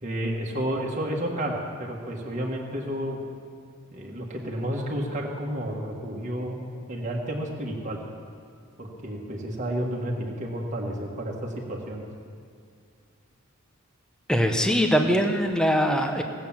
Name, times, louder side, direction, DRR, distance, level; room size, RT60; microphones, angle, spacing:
voice 1, 0.0-3.2 3.9-6.6 6.9-8.0 8.8-12.0, equal, 35° right, -2 dB, 1.5 m, -31 dB
voice 2, 14.3-16.2, equal, 5° left, 4 dB, 0.9 m, -22 dB
17.5 x 7.9 x 7.3 m, 2.3 s
head